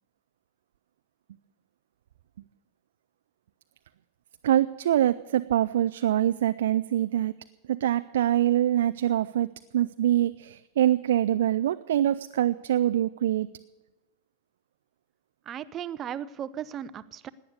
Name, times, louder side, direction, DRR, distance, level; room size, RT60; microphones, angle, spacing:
voice 1, 4.4-7.3 7.7-9.5 9.7-13.5, right 12 dB, 60° right, 12 dB, 0.4 m, -24 dB
voice 2, 15.5-17.3, right 9 dB, 30° right, 16 dB, 0.7 m, -36 dB
17.5 x 9.9 x 6.6 m, 1.1 s
figure-of-eight pair, 90°, 0 cm